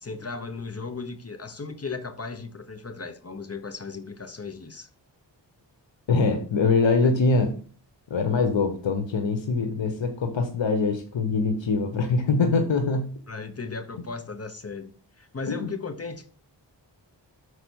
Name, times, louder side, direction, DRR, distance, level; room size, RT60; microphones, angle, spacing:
voice 1, 0.0-4.9 7.0-7.1 13.3-14.9 15.2-16.3, left 4 dB, 35° left, 0.9 m, -36 dB
voice 2, 6.1-7.5 8.1-13.1 15.5-15.7, left 4 dB, 85° left, 1.1 m, -23 dB
6.7 x 4.8 x 6.2 m
wide cardioid pair, 95°, 44 cm